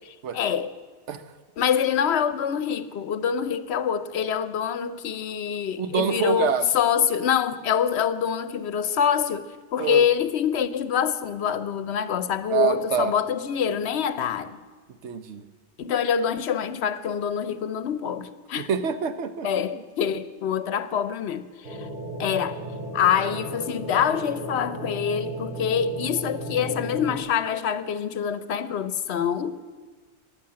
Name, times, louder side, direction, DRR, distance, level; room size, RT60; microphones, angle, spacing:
voice 1, 0.3-0.7 1.6-14.6 15.8-18.7 19.4-21.9 22.2-22.6 22.9-29.6, left 8 dB, 70° left, 0.9 m, -25 dB
voice 2, 5.8-6.7 9.8-10.0 12.5-13.1 15.0-15.4 18.6-19.8, right 7 dB, 80° right, 1.1 m, -26 dB
sound 1, 21.6-27.2, right 1 dB, 50° right, 2.8 m, -35 dB
14.5 x 11.0 x 7.6 m
omnidirectional pair, 1.2 m